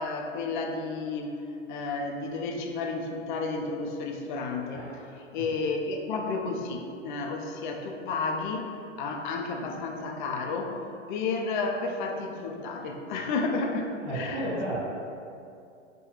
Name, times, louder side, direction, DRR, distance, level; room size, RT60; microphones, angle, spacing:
voice 1, 0.0-1.4 1.7-4.8 5.3-10.8 11.1-14.4, left 3 dB, 40° left, 3 dB, 0.4 m, -32 dB
voice 2, 4.7-5.0 5.4-5.5 14.0-14.8, right 1 dB, 5° right, -13 dB, 1.4 m, -33 dB
4.9 x 2.2 x 3.1 m, 2.5 s
hypercardioid pair, 135°, 37 cm